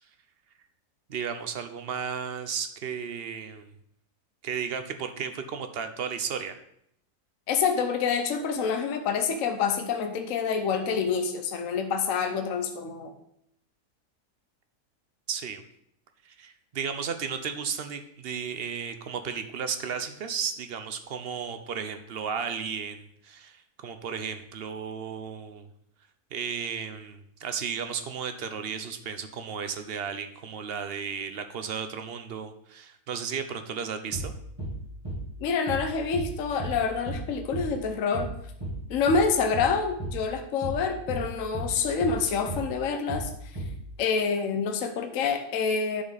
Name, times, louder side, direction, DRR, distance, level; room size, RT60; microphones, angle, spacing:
voice 1, 1.1-3.7 4.4-6.6 15.3-15.6 16.2-25.7 26.3-34.3, right 6 dB, 50° right, 8 dB, 0.7 m, -34 dB
voice 2, 7.5-13.1 35.4-38.3 38.9-43.6 44.0-46.0, left 5 dB, 60° left, 6 dB, 1.1 m, -27 dB
sound 1, 34.1-34.3 34.6-34.8 35.0-35.2 35.7-35.9 36.1-36.3 36.6-36.8 37.1-37.3 37.5-37.7 38.1-38.3 38.6-38.8 39.1-39.3 39.5-39.7 40.0-40.2 40.6-40.8 41.1-41.3 41.5-41.7 42.0-42.2 42.5-42.7 43.1-43.3 43.6-43.8, right 1 dB, 20° right, 3.1 m, -34 dB
9.8 x 5.4 x 4.0 m, 0.72 s
omnidirectional pair, 1.7 m